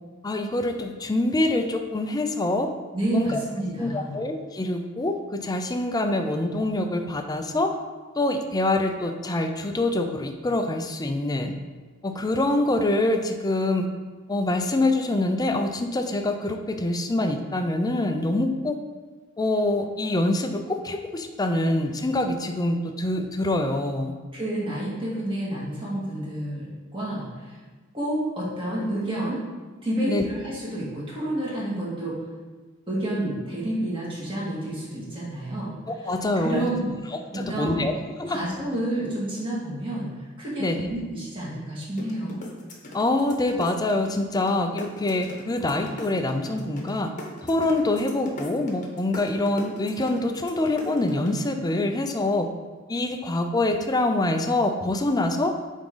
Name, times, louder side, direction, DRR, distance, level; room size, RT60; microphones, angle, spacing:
voice 1, 0.2-2.7 3.1-3.4 3.8-7.7 8.2-11.5 12.0-13.9 14.3-18.8 19.4-24.1 30.1-30.2 35.9-36.7 37.1-37.9 38.2-38.4 40.6-40.8 42.9-47.1 47.4-52.5 52.9-55.5, left 2 dB, 20° left, 6 dB, 0.5 m, -25 dB
voice 2, 2.9-4.1 24.3-27.6 27.9-29.4 29.8-32.2 32.9-35.8 36.4-36.9 37.3-37.9 38.2-42.4, right 1 dB, 25° right, -7 dB, 2.0 m, -29 dB
sound 1, 42.0-44.5 44.8-51.4, left 1 dB, 40° left, 1.0 m, -39 dB
8.7 x 3.6 x 3.9 m, 1.4 s
head